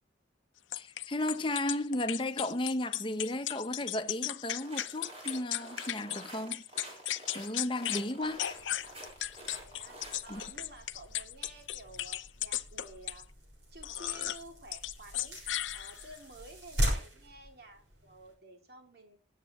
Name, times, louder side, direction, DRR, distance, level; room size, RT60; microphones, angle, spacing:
sound 1, 0.7-6.2 6.5-8.1 8.4-13.2 13.8-14.4 14.7-16.2, left 13 dB, 90° left, 0.7 m, -36 dB
voice 1, 0.7-6.9 7.3-8.4 10.3-10.4, left 1 dB, 25° left, 0.9 m, -34 dB
sound 2, 4.6-10.5, right 1 dB, 30° right, 4.5 m, -48 dB
sound 3, 8.2-18.3, equal, 75° right, 6.2 m, -40 dB
voice 2, 9.6-13.3 13.7-19.2, right 1 dB, 55° right, 2.8 m, -52 dB
20.5 x 8.4 x 3.1 m
head